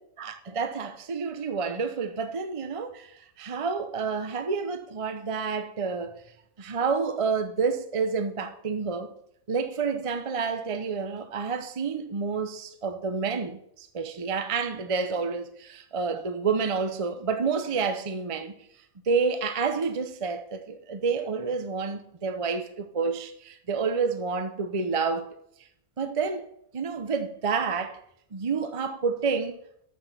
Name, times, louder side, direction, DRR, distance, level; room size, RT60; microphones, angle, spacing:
voice 1, 0.2-6.2 6.6-9.1 9.5-18.5 19.1-25.4 26.0-26.5 26.7-28.0 28.3-29.6, right 5 dB, 30° right, 0.7 m, -29 dB
12.0 x 6.0 x 6.8 m
omnidirectional pair, 1.6 m